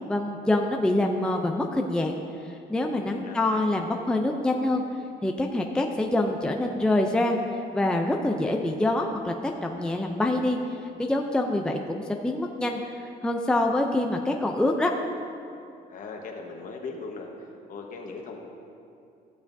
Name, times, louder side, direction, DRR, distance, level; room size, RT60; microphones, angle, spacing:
voice 1, 0.1-2.2 2.5-4.8 5.2-7.4 7.7-10.6 11.0-14.9, left 1 dB, 5° left, 2 dB, 0.5 m, -25 dB
voice 2, 3.1-3.6 15.9-17.3 17.7-18.4, left 4 dB, 50° left, 1 dB, 1.3 m, -38 dB
14.5 x 6.8 x 2.7 m, 2.5 s
cardioid pair, 110°, 17 cm